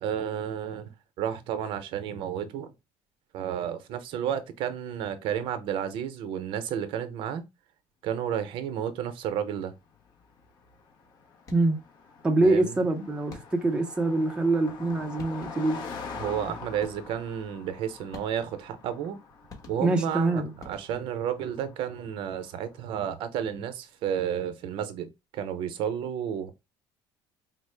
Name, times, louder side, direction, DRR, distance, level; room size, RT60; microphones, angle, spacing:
voice 1, 0.0-2.7 3.3-7.4 8.0-9.7 12.4-12.8 16.2-19.2 19.7-26.5, right 9 dB, 60° right, 0.6 m, -32 dB
Car passing by, 9.3-23.1, left 4 dB, 50° left, 0.7 m, -45 dB
sound 1, 11.4-11.9 13.3-13.8 14.8-14.9 15.2-15.8 16.8-17.3 18.1-18.7 19.5-20.2 20.6-21.3, left 4 dB, 35° left, 1.2 m, -49 dB
voice 2, 12.2-15.8 19.8-20.5, right 2 dB, 10° right, 0.5 m, -25 dB
4.3 x 2.0 x 3.2 m
cardioid pair, 150°, 10 cm